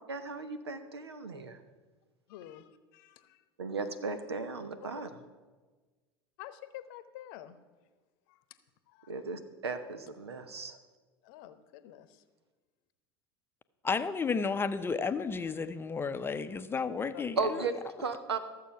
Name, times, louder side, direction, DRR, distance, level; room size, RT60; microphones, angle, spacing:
voice 1, 0.1-1.6 3.6-5.1 9.1-10.8 17.4-18.4, right 4 dB, 80° right, 1.0 m, -36 dB
voice 2, 2.3-3.4 4.8-4.9 6.4-7.6 8.3-8.6 8.9-9.2 11.2-12.2 17.1-17.2, left 13 dB, 55° left, 0.9 m, -49 dB
voice 3, 13.8-17.6, left 5 dB, 15° left, 0.7 m, -32 dB
14.0 x 7.5 x 5.8 m
figure-of-eight pair, 80°, 13 cm